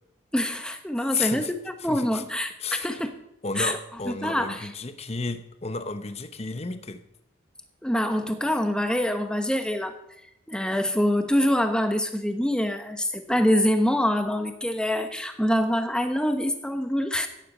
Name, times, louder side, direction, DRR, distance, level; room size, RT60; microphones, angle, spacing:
voice 1, 0.3-3.1 3.6-3.8 4.1-4.7 7.8-10.0 10.5-17.3, equal, 5° left, 7 dB, 1.1 m, -25 dB
voice 2, 1.1-1.5 1.8-2.2 2.6-2.9 3.4-7.0, left 4 dB, 30° left, 10 dB, 0.9 m, -32 dB
14.5 x 10.0 x 5.5 m, 0.82 s
head